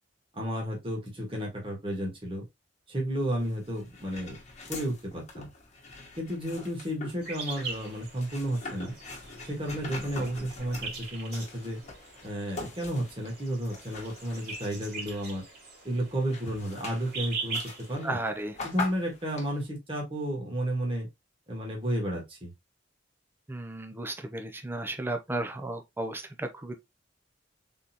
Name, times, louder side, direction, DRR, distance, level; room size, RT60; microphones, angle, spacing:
voice 1, 0.3-2.4 2.9-4.4 4.7-5.5 6.2-8.9 9.4-11.8 12.2-15.4 15.8-18.2 18.6-21.1 21.5-22.5, right 1 dB, 30° right, 1.5 m, -32 dB
sound 1, 3.4-15.5 15.9-19.7, left 3 dB, 40° left, 1.2 m, -43 dB
sound 2, 7.2-17.9, right 4 dB, 55° right, 2.4 m, -42 dB
voice 2, 18.0-18.5 23.5-26.8, right 2 dB, 10° right, 0.5 m, -34 dB
3.8 x 3.5 x 2.8 m
head